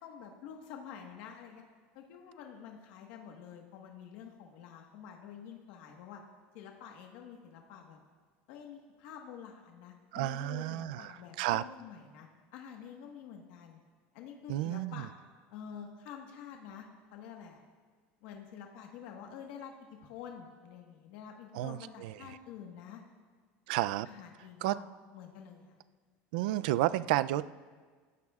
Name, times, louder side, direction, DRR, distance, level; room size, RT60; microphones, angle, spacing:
voice 1, 0.0-1.6 1.9-6.2 6.5-8.0 8.5-13.8 14.1-15.1 15.5-17.6 18.2-19.7 20.0-23.0 24.0-24.9 25.1-25.8, left 8 dB, 60° left, 1 dB, 1.4 m, -48 dB
voice 2, 10.1-11.1 11.4-11.6 14.5-15.0 21.5-22.1 23.7-24.1 24.6-24.8 26.3-27.5, right 15 dB, 80° right, 15 dB, 0.4 m, -31 dB
26.0 x 15.0 x 2.4 m, 1.5 s
cardioid pair, 175°, 5 cm